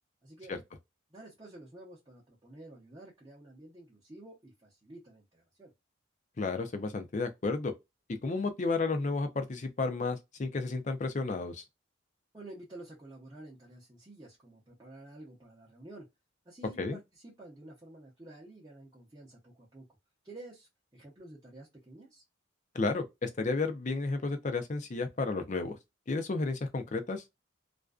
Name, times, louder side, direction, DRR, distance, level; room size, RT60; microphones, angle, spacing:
voice 1, 1.1-5.7 12.3-16.1 16.4-19.8 20.2-22.2, right 2 dB, 20° right, 0.6 m, -51 dB
voice 2, 6.4-7.7 8.2-11.6 16.8-17.0 22.7-25.8 26.1-27.2, left 3 dB, 40° left, 0.5 m, -32 dB
2.4 x 2.2 x 2.3 m
head